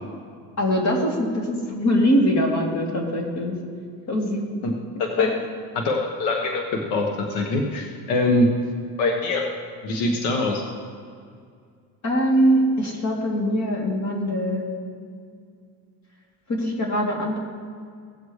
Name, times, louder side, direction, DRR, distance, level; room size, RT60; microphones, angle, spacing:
voice 1, 0.6-3.5 4.1-4.5 5.2-5.3 12.0-14.7 16.5-17.4, equal, 45° left, -1 dB, 2.9 m, -22 dB
voice 2, 5.7-8.5 9.0-9.4 9.8-10.6, left 2 dB, 80° left, 1 dB, 1.4 m, -23 dB
17.0 x 7.8 x 3.2 m, 2.2 s
supercardioid pair, 90°, 40 cm